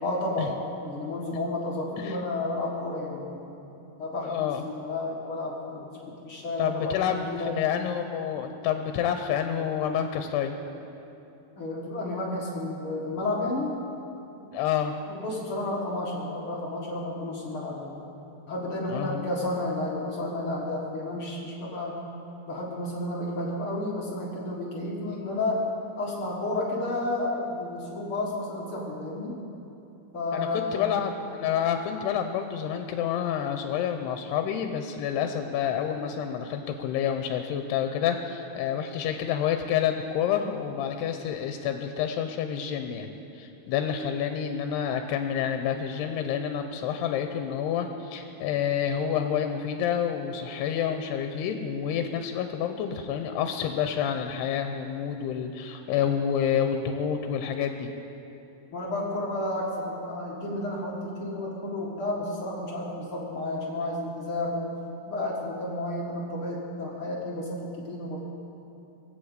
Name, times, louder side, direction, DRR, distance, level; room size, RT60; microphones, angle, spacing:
voice 1, 0.0-3.5 4.0-7.5 11.6-13.8 15.1-18.0 18.5-22.0 22.5-25.6 26.0-29.4 30.1-30.9 58.7-64.7 65.1-68.2, left 2 dB, 50° left, -3 dB, 1.7 m, -31 dB
voice 2, 4.2-4.6 6.6-10.6 14.5-15.0 18.9-19.3 30.3-57.9, left 8 dB, 85° left, 6 dB, 2.8 m, -28 dB
20.0 x 8.4 x 8.1 m, 2.9 s
omnidirectional pair, 4.7 m